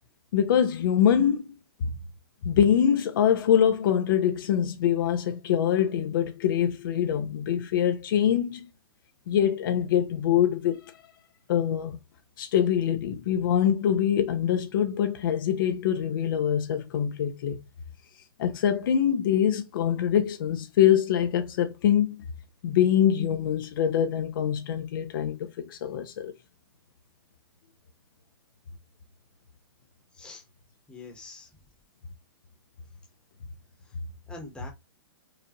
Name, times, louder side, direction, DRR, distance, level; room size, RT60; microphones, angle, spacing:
voice 1, 0.3-1.5 1.8-1.9 2.4-8.7 9.3-11.0 11.5-12.0 12.4-17.6 18.4-22.2 22.6-26.3, left 9 dB, 60° left, 0.9 m, -24 dB
voice 2, 30.1-30.4 30.9-31.5 33.8-34.0 34.3-34.7, left 2 dB, 5° left, 1.3 m, -44 dB
4.9 x 2.5 x 2.9 m
hypercardioid pair, 145°, 13 cm